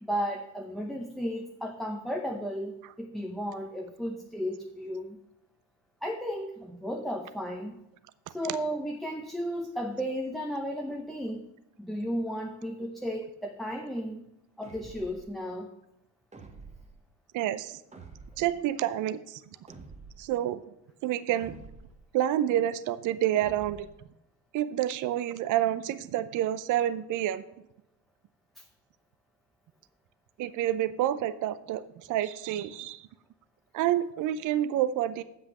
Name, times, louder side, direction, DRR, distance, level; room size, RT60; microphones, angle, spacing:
voice 1, 0.0-5.2 6.0-7.8 8.3-11.4 11.8-14.2 14.6-15.7 28.6-28.7, equal, ahead, 1 dB, 0.7 m, -34 dB
sound 1, 14.6-15.3 16.3-17.0 17.9-18.6 19.7-20.3 21.4-22.0 23.4-24.0, right 4 dB, 15° right, 1.2 m, -48 dB
voice 2, 17.3-17.8 18.4-19.4 20.2-20.6 21.0-21.6 22.1-23.9 24.5-27.4 30.4-33.1 33.7-35.2, right 12 dB, 45° right, 14 dB, 0.5 m, -28 dB
7.7 x 5.8 x 6.6 m, 0.85 s
supercardioid pair, 95°, 41 cm